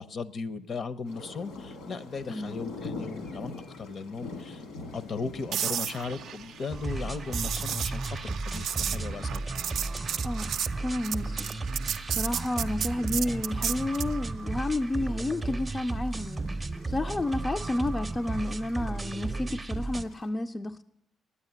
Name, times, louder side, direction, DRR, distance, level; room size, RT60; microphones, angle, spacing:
voice 1, 0.0-4.6 4.9-9.4, left 4 dB, 50° left, 0.7 m, -37 dB
sound 1, 1.0-20.3, left 3 dB, 90° left, 2.1 m, -47 dB
voice 2, 2.3-2.6 10.2-10.5 10.8-11.5 12.1-16.5 16.9-20.8, left 2 dB, 25° left, 0.4 m, -31 dB
sound 2, 5.5-14.2 18.4-18.6, right 9 dB, 70° right, 0.4 m, -34 dB
sound 3, 6.7-20.0, right 3 dB, 20° right, 0.6 m, -34 dB
9.7 x 8.7 x 9.7 m
cardioid pair, 90°, 0 cm